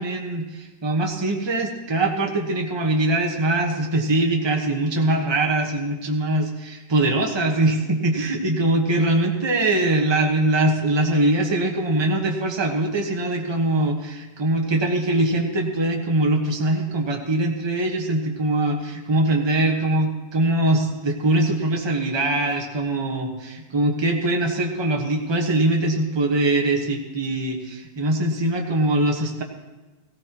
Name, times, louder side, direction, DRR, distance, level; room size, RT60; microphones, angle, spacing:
voice 1, 0.0-29.4, right 1 dB, 15° right, 1 dB, 1.1 m, -22 dB
17.5 x 16.0 x 3.0 m, 1.1 s
omnidirectional pair, 1.9 m